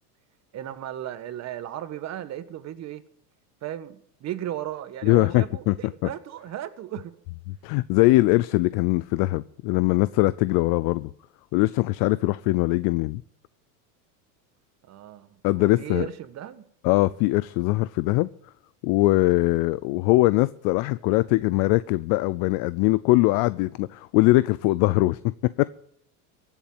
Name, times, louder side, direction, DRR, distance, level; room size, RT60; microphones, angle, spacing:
voice 1, 0.5-3.0 3.6-7.2 14.8-16.7, right 11 dB, 35° right, 1.3 m, -36 dB
voice 2, 5.0-5.7 7.6-11.1 11.5-13.2 15.4-16.1 16.8-18.3 18.8-25.6, left 20 dB, 45° left, 0.5 m, -21 dB
15.5 x 7.3 x 9.0 m
supercardioid pair, 115°, 46 cm